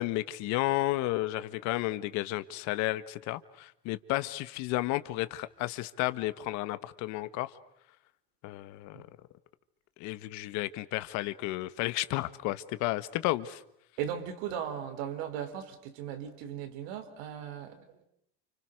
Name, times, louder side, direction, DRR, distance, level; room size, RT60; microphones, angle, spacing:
voice 1, 0.0-7.6 8.4-9.0 10.0-13.6, left 17 dB, 60° left, 1.6 m, -32 dB
voice 2, 14.0-18.0, right 9 dB, 85° right, 4.3 m, -37 dB
30.0 x 29.5 x 6.6 m
cardioid pair, 165°, 32 cm